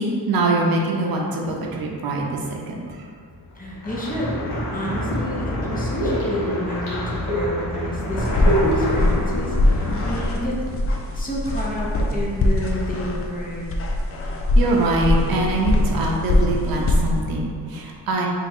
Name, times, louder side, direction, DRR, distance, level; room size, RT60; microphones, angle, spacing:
voice 1, 0.0-3.1 14.5-18.3, right 2 dB, 60° right, -1 dB, 0.6 m, -23 dB
sound 1, 3.4-10.3, equal, 80° left, 1.1 m, -25 dB
voice 2, 3.5-4.4 4.7-10.6 11.1-13.7, equal, 20° left, -5 dB, 0.8 m, -30 dB
sound 2, 8.2-17.2, left 1 dB, 35° left, 0.4 m, -22 dB
2.9 x 2.6 x 4.3 m, 2.1 s
wide cardioid pair, 100°, 40 cm